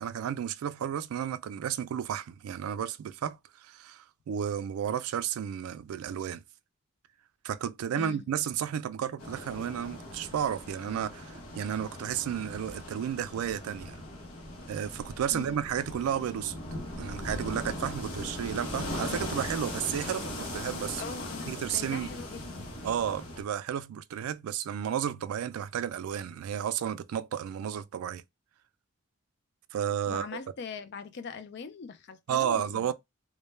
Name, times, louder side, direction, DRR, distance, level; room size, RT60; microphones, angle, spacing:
voice 1, 0.0-6.4 7.4-14.0 14.7-16.6 17.0-21.0 21.5-22.1 22.8-28.2 29.7-30.3 32.3-32.9, right 9 dB, 90° right, 0.3 m, -32 dB
sound 1, 9.2-23.4, left 1 dB, 90° left, 0.7 m, -39 dB
voice 2, 21.0-22.7 30.1-32.9, left 5 dB, 50° left, 0.3 m, -41 dB
2.1 x 2.1 x 3.1 m
head